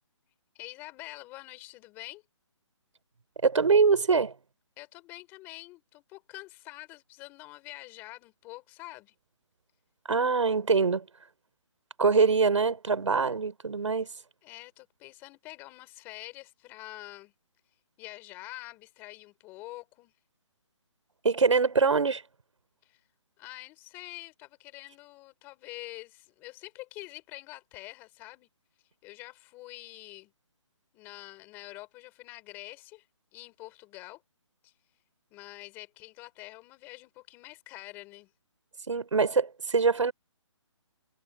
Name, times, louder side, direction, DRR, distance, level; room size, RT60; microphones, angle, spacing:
voice 1, 0.5-2.2 4.8-9.1 14.4-17.3 18.0-20.1 22.8-23.0 23.4-28.5 29.0-30.3 30.9-33.0 33.3-34.2 34.6-34.7 35.3-38.3, left 20 dB, 15° left, 4.9 m, -46 dB
voice 2, 3.4-4.4 10.1-11.1 12.0-14.1 21.2-22.2 38.9-40.1, right 5 dB, 80° right, 6.0 m, -24 dB
hypercardioid pair, 175°, 16 cm